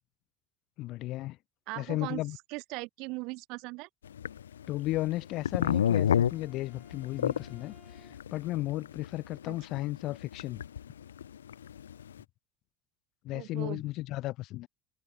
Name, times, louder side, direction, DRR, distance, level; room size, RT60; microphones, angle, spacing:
voice 1, 0.8-1.4 1.7-2.4 4.7-10.6 13.2-14.7, left 17 dB, 60° left, 1.6 m, -34 dB
voice 2, 1.7-2.2 2.5-3.9 9.5-9.6 13.3-13.8, right 26 dB, 65° right, 1.9 m, -39 dB
sound 1, 4.2-12.1, left 9 dB, 85° left, 0.4 m, -29 dB
Bowed string instrument, 5.1-8.5, left 3 dB, 15° left, 5.8 m, -62 dB
hypercardioid pair, 70°, 0 cm